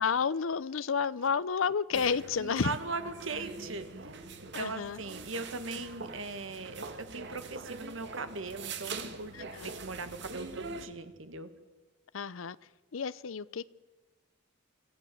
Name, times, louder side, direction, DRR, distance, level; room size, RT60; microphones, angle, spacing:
voice 1, 0.0-2.8 4.5-5.0 9.3-9.7 12.1-12.6 12.9-13.7, left 6 dB, 90° left, 18 dB, 0.6 m, -31 dB
sound 1, 1.9-10.9, right 4 dB, 60° right, 1.9 m, -43 dB
voice 2, 2.4-4.1 4.6-9.5 9.8-11.5, right 3 dB, 80° right, 10 dB, 1.8 m, -39 dB
25.5 x 14.5 x 7.9 m, 1.3 s
head